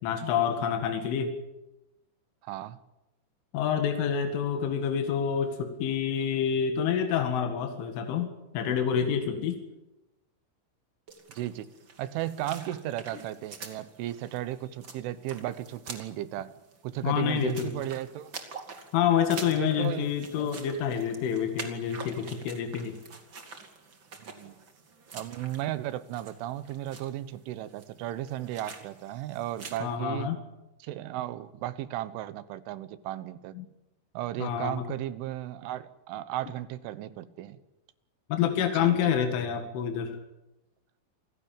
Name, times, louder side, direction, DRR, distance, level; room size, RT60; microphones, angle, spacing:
voice 1, 0.0-1.3 3.5-9.6 17.0-17.8 18.9-23.0 29.8-30.4 33.5-33.7 34.4-34.8 38.3-40.2, left 8 dB, 80° left, 6 dB, 4.4 m, -28 dB
voice 2, 2.4-2.8 11.4-11.7 12.0-16.5 16.8-18.3 19.6-20.1 24.3-24.6 25.1-30.3 30.8-33.6 34.2-37.6 38.8-39.2, right 13 dB, 85° right, 15 dB, 3.6 m, -35 dB
sound 1, 11.1-29.8, right 4 dB, 35° right, 2.3 m, -46 dB
28.0 x 16.5 x 9.0 m, 0.95 s
omnidirectional pair, 5.5 m